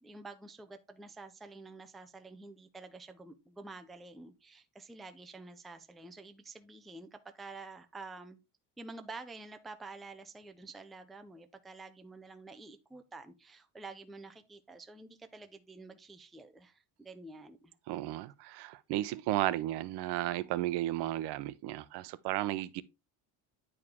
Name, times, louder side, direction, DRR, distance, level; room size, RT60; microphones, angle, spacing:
voice 1, 0.0-8.4 8.8-17.7, right 3 dB, ahead, 0.3 m, -49 dB
voice 2, 17.9-22.8, right 15 dB, 70° right, 0.7 m, -34 dB
9.7 x 4.8 x 3.5 m
cardioid pair, 170°, 41 cm